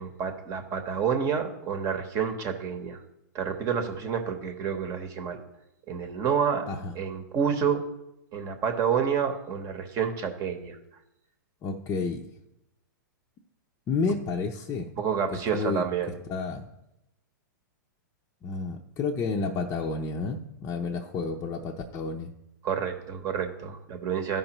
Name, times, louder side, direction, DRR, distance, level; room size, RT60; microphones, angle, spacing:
voice 1, 0.0-3.0 3.3-5.4 5.9-6.7 6.9-7.8 8.3-10.8 15.0-16.1 22.6-24.4, right 7 dB, 35° right, 5 dB, 1.0 m, -29 dB
voice 2, 11.6-12.3 13.9-14.9 15.5-15.8 16.3-16.7 18.4-22.3, left 4 dB, 25° left, 1 dB, 0.7 m, -30 dB
13.5 x 5.4 x 3.0 m, 0.86 s
hypercardioid pair, 125°, 11 cm